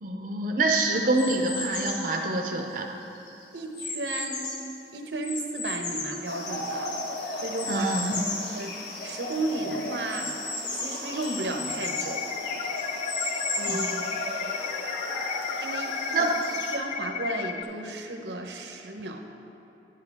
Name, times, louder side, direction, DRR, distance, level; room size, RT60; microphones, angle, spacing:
voice 1, 0.0-2.9 7.7-8.3 13.7-14.0 16.1-16.3, right 2 dB, 50° right, 1 dB, 0.6 m, -26 dB
sound 1, 1.1-2.1 2.7-4.7 5.2-6.9 7.6-8.5 9.0-9.1 9.3-9.4 10.1-12.2 12.8-14.1, left 3 dB, 85° left, 1.6 m, -34 dB
voice 2, 3.5-4.5 4.9-7.9 8.3-10.3 10.6-12.2 13.3-14.1 15.6-15.9 16.2-16.3 16.7-19.2, right 2 dB, 85° right, 3 dB, 0.9 m, -34 dB
sound 2, 6.2-16.8, left 1 dB, 65° left, 1.3 m, -35 dB
sound 3, 11.8-17.6, left 7 dB, 35° left, 0.3 m, -34 dB
10.5 x 10.5 x 3.5 m, 2.9 s
head